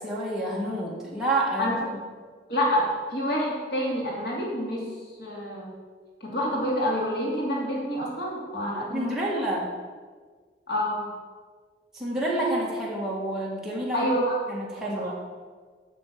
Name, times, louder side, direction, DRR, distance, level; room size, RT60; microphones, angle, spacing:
voice 1, 0.0-1.8 8.5-9.7 11.9-14.1 14.5-15.2, right 1 dB, 5° right, -7 dB, 2.0 m, -29 dB
voice 2, 2.5-5.7 6.2-9.2 10.7-11.1 13.9-14.3 14.8-15.1, equal, 60° left, -4 dB, 2.8 m, -28 dB
8.4 x 6.5 x 6.8 m, 1.5 s
head